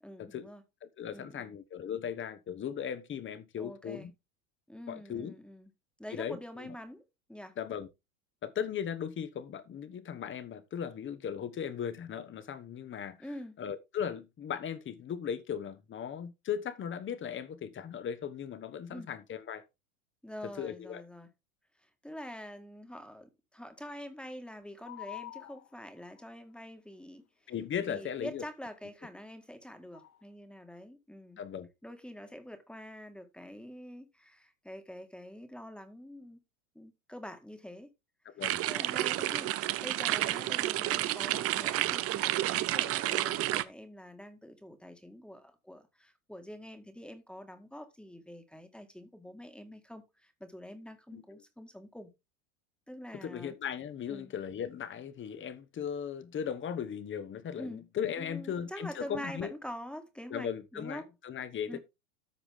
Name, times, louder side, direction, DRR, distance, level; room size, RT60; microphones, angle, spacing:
voice 1, 0.0-0.6 1.1-1.5 3.6-4.1 4.7-5.7 6.0-7.0 7.3-7.6 13.2-13.6 18.9-19.1 20.2-21.3 21.8-27.5 27.8-31.4 31.8-36.4 36.8-37.9 38.7-52.1 52.9-53.5 54.1-54.3 57.6-57.8 58.2-61.1 61.7-61.8, equal, ahead, 1.8 m, -46 dB
voice 2, 0.8-4.1 4.9-5.3 6.1-6.7 7.6-7.9 8.4-13.2 13.6-19.6 20.6-21.0 27.5-28.4 31.4-31.7 38.2-38.6 51.1-51.4 53.2-59.5 60.3-61.8, left 8 dB, 30° left, 1.3 m, -37 dB
sound 1, 24.8-26.2 29.9-30.2, left 17 dB, 90° left, 0.7 m, -46 dB
sound 2, 38.4-43.6, right 15 dB, 35° right, 0.7 m, -30 dB
13.5 x 4.9 x 3.6 m
hypercardioid pair, 105°, 41 cm